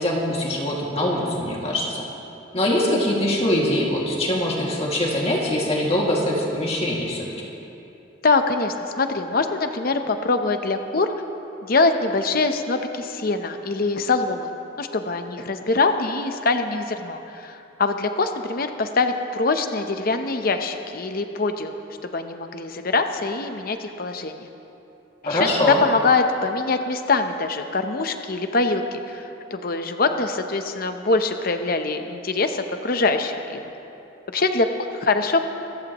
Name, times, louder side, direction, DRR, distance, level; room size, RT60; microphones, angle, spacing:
voice 1, 0.0-2.1 2.5-7.3 25.2-25.8, left 1 dB, 30° left, -3 dB, 2.2 m, -23 dB
voice 2, 8.2-11.1 11.6-24.5 25.2-33.6 34.3-35.4, left 3 dB, 50° left, 7 dB, 0.8 m, -23 dB
26.0 x 14.0 x 3.0 m, 2.9 s
head